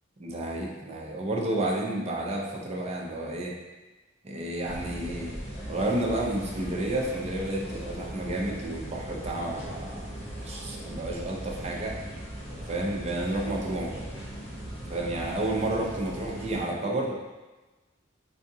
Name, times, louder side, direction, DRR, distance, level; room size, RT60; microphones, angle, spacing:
voice 1, 0.2-3.5 4.2-5.3 5.7-10.1 10.3-12.0 12.7-14.1 14.9-17.1, right 1 dB, 35° right, -2 dB, 0.6 m, -31 dB
sound 1, 4.6-16.6, right 1 dB, 30° left, 0.8 m, -39 dB
4.7 x 2.4 x 2.7 m, 1.2 s
head